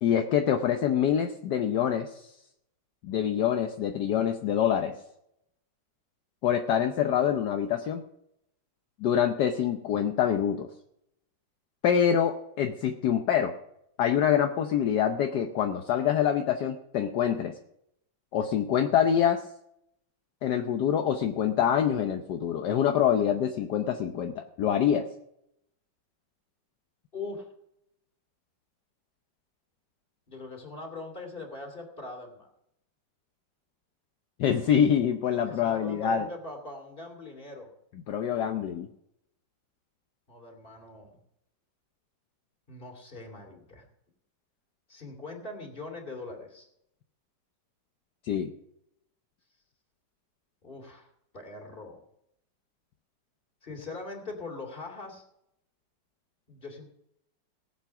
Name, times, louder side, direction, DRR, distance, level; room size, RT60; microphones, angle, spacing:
voice 1, 0.0-2.2 3.0-4.9 6.4-8.0 9.0-10.7 11.8-13.5 14.0-17.5 18.3-19.4 20.4-25.0 34.4-36.3 38.1-38.9 48.2-48.5, left 9 dB, 70° left, 5 dB, 1.4 m, -25 dB
voice 2, 27.1-27.5 30.3-32.5 35.4-37.7 40.3-41.2 42.7-43.8 44.9-46.7 50.6-51.1 51.3-52.0 53.6-55.2 56.5-56.9, left 3 dB, 30° left, 3 dB, 3.0 m, -41 dB
18.0 x 8.0 x 5.8 m, 0.78 s
omnidirectional pair, 2.0 m